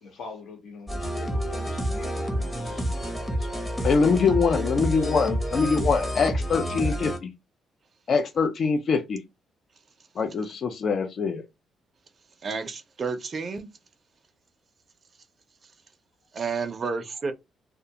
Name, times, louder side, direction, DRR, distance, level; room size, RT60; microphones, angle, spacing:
voice 1, 0.0-2.8 3.3-4.1 6.7-7.0, left 4 dB, 75° left, 1.0 m, -44 dB
sound 1, 0.9-7.2, equal, 15° left, 0.7 m, -29 dB
voice 2, 3.8-7.3 8.1-9.2 10.2-11.4, left 5 dB, 55° left, 0.4 m, -23 dB
voice 3, 12.4-13.7 16.3-17.3, right 5 dB, 40° right, 0.4 m, -30 dB
2.3 x 2.2 x 2.7 m
cardioid pair, 90°, 0 cm